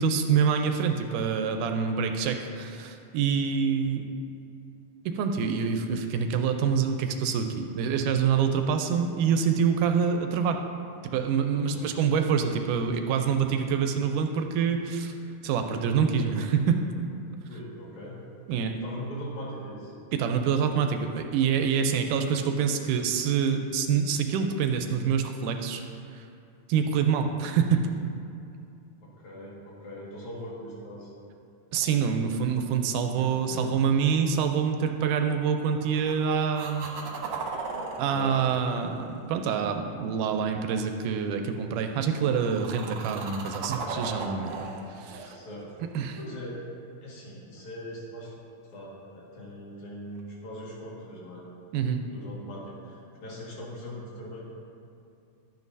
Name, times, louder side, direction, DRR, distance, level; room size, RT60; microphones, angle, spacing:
voice 1, 0.0-4.1 5.1-10.6 11.0-15.2 15.4-16.8 18.5-18.8 20.1-25.8 26.1-26.3 26.7-27.9 31.7-36.9 38.0-45.4 46.0-46.2 51.7-52.0, right 6 dB, 80° right, 5 dB, 2.0 m, -26 dB
voice 2, 11.5-11.9 17.5-18.2 18.7-19.9 29.0-31.1 33.2-33.9 38.1-38.4 45.1-45.7 46.0-46.7 47.0-48.3 48.6-51.5 51.9-54.4, equal, 65° left, -5 dB, 3.2 m, -41 dB
sound 1, 31.7-33.0 35.6-36.2 36.5-39.8 42.1-46.4 50.2-50.3, right 4 dB, 65° right, 1.8 m, -38 dB
12.5 x 9.5 x 2.7 m, 2.5 s
omnidirectional pair, 3.8 m